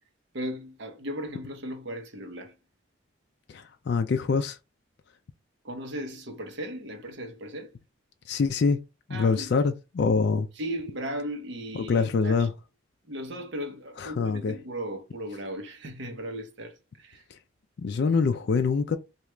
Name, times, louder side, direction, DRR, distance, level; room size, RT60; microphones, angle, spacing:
voice 1, 0.3-2.6 5.6-7.7 9.1-9.6 10.5-12.5 13.1-17.2, equal, 60° right, 0.8 m, -36 dB
voice 2, 3.5-4.6 8.3-8.8 9.1-10.5 11.9-12.5 14.0-14.5 17.8-19.0, left 4 dB, 50° left, 0.3 m, -25 dB
3.0 x 2.4 x 3.2 m
head